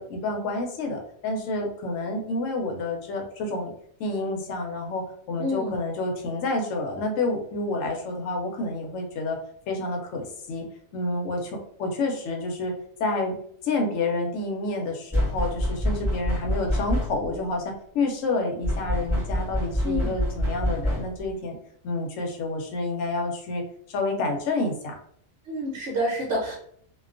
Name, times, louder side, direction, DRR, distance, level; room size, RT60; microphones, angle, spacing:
voice 1, 0.0-3.7 4.0-9.4 9.7-10.7 10.9-12.7 13.0-13.3 13.6-21.6 21.8-25.0, left 2 dB, 75° left, 2 dB, 0.9 m, -29 dB
voice 2, 5.4-5.8 19.8-20.1 25.5-26.6, equal, 65° right, -4 dB, 0.9 m, -28 dB
sound 1, 15.1-17.4 18.6-21.3, left 1 dB, ahead, 0.8 m, -26 dB
2.4 x 2.2 x 2.4 m, 0.64 s
omnidirectional pair, 1.4 m